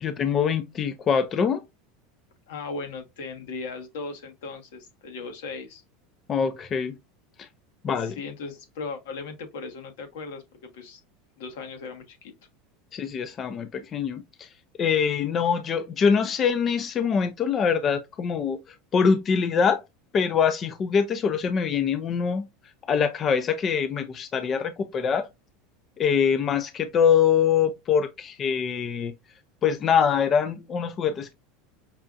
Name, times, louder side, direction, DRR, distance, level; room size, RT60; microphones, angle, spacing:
voice 1, 0.0-1.6 6.3-7.0 7.4-7.5 7.8-8.2 12.9-14.5 14.8-19.8 20.1-22.5 22.9-25.3 26.0-29.1 29.6-31.3, left 7 dB, 25° left, 0.4 m, -24 dB
voice 2, 2.5-5.8 7.9-11.0 11.4-12.3, left 4 dB, 80° left, 1.2 m, -37 dB
5.5 x 2.4 x 2.5 m
supercardioid pair, 155°, 0 cm